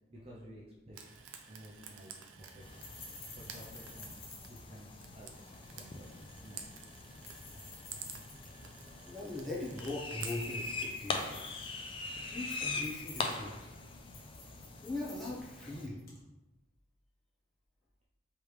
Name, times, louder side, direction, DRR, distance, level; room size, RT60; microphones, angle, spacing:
voice 1, 0.1-1.0 1.5-2.1 2.4-2.9 3.3-4.1 4.5-5.4 5.7-6.7, equal, 30° right, -5 dB, 0.7 m, -53 dB
Frying (food), 0.9-10.9, right 6 dB, 80° right, 0.5 m, -51 dB
sound 1, 1.2-16.3, left 3 dB, 50° left, 1.1 m, -54 dB
sound 2, 2.6-15.8, left 3 dB, 25° left, 0.3 m, -42 dB
voice 2, 9.0-11.4 12.3-13.5 14.8-16.0, left 2 dB, ahead, -8 dB, 0.9 m, -40 dB
3.4 x 3.2 x 4.7 m, 1.0 s
head